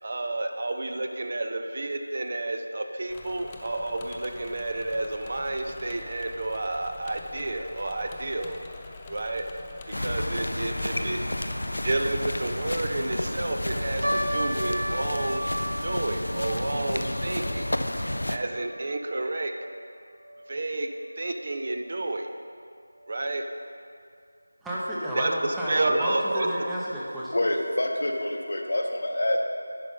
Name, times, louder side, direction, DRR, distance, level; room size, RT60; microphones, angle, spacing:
voice 1, 0.0-8.6 9.1-9.4 9.9-11.2 11.8-15.4 15.8-17.7 18.3-19.5 20.5-20.9 21.2-22.3 23.1-23.5 25.1-26.5, right 2 dB, 45° right, 5 dB, 0.6 m, -30 dB
Engine / Mechanisms, 3.1-17.6, left 4 dB, 15° left, 0.4 m, -45 dB
sound 1, 9.9-18.4, left 1 dB, 75° left, 0.5 m, -31 dB
sound 2, 14.0-20.5 20.8-20.9 21.6-21.9 22.5-22.6 23.0-23.1, equal, 85° right, 1.5 m, -35 dB
voice 2, 24.6-27.4, equal, 5° right, -8 dB, 0.8 m, -30 dB
voice 3, 27.3-29.4, left 1 dB, 60° left, 2 dB, 1.0 m, -27 dB
10.5 x 5.1 x 5.4 m, 2.3 s
figure-of-eight pair, 170°, 0 cm